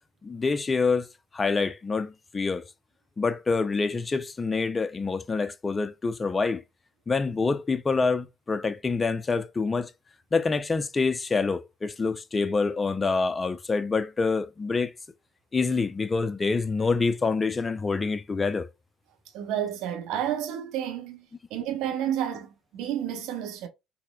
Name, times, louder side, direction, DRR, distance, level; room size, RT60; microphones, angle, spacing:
voice 1, 0.2-1.1 1.3-2.6 3.2-6.6 7.1-9.9 10.3-14.9 15.5-18.7, left 4 dB, 25° left, 0.4 m, -26 dB
voice 2, 19.3-21.2 21.5-23.7, right 10 dB, 60° right, 0.7 m, -30 dB
4.2 x 2.0 x 2.2 m
figure-of-eight pair, 60°, 0 cm